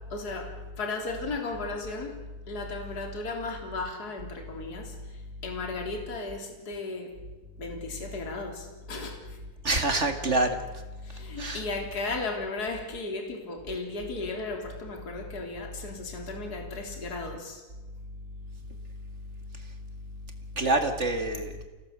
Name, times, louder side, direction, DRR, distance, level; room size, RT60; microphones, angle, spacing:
voice 1, 0.1-0.5 0.8-2.1 2.5-4.9 5.4-7.1 7.6-9.2 11.0-17.6, left 3 dB, 30° left, 3 dB, 3.8 m, -35 dB
voice 2, 9.6-10.6 11.4-11.6 20.5-21.5, right 2 dB, 30° right, 6 dB, 1.6 m, -26 dB
28.5 x 18.0 x 8.1 m, 1.2 s
omnidirectional pair, 3.7 m